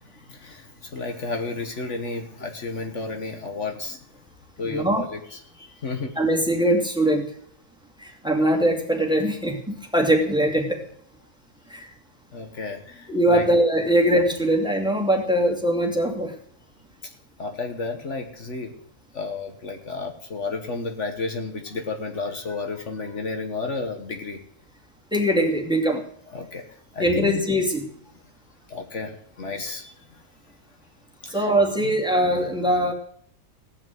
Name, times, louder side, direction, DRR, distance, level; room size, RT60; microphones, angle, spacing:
voice 1, 0.0-4.0 4.6-6.1 12.3-13.5 17.4-18.7 19.1-24.4 26.3-26.6 26.9-27.5 28.7-29.1 29.4-29.9 31.2-31.5 31.8-31.9, left 3 dB, 65° left, 5 dB, 1.7 m, -32 dB
voice 2, 4.6-5.0 6.2-7.3 8.0-10.8 11.7-11.8 13.1-16.3 25.1-26.0 27.0-27.8 31.3-32.9, right 1 dB, 5° right, 1 dB, 2.4 m, -21 dB
16.5 x 6.0 x 9.2 m, 0.64 s
omnidirectional pair, 1.4 m